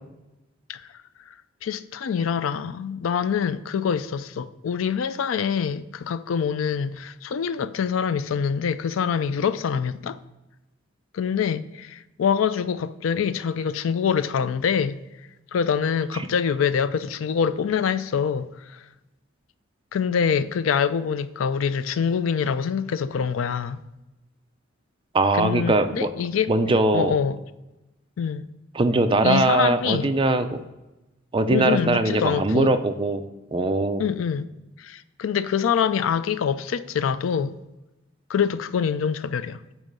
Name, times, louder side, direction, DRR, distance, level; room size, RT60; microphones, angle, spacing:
voice 1, 1.6-10.2 11.1-15.0 15.5-18.8 19.9-23.8 25.3-26.5 26.9-27.4 28.2-28.5 29.2-30.1 31.5-32.8 34.0-34.5 34.8-37.6 38.3-39.6, left 7 dB, 85° left, 0.4 m, -25 dB
voice 2, 25.1-26.1 26.5-27.1 28.7-30.6 31.3-33.2 33.5-34.0, right 2 dB, 25° right, 0.5 m, -21 dB
8.9 x 3.1 x 6.6 m
head